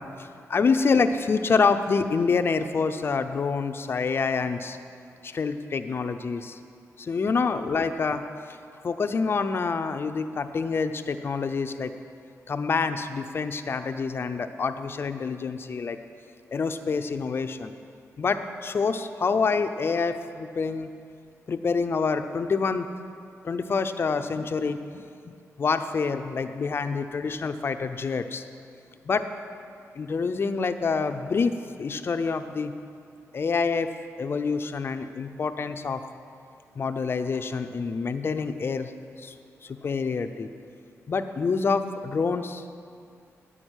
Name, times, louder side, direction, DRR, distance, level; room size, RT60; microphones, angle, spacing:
voice 1, 0.0-4.8 5.2-6.6 7.0-8.2 8.5-8.6 8.8-11.9 12.5-16.0 16.5-17.7 18.2-20.9 21.5-22.9 23.4-25.3 25.6-28.4 29.1-29.3 29.9-31.5 31.8-32.7 33.3-33.9 34.2-36.0 36.8-38.9 39.2-39.3 39.6-40.5 41.1-42.6, left 5 dB, 45° left, 8 dB, 0.6 m, -27 dB
9.3 x 6.2 x 8.2 m, 2.4 s
cardioid pair, 100°, 5 cm